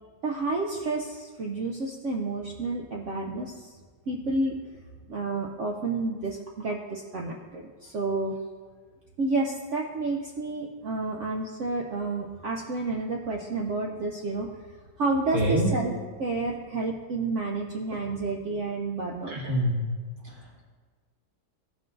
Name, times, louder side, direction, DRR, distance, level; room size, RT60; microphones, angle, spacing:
voice 1, 0.2-3.8 4.1-4.6 5.1-8.4 9.2-14.5 15.0-15.9 16.2-19.4, right 3 dB, 75° right, 0 dB, 0.6 m, -30 dB
voice 2, 15.3-15.8 19.3-19.7 20.2-20.6, right 1 dB, 40° right, -4 dB, 1.8 m, -26 dB
14.5 x 5.6 x 2.6 m, 1.5 s
omnidirectional pair, 2.0 m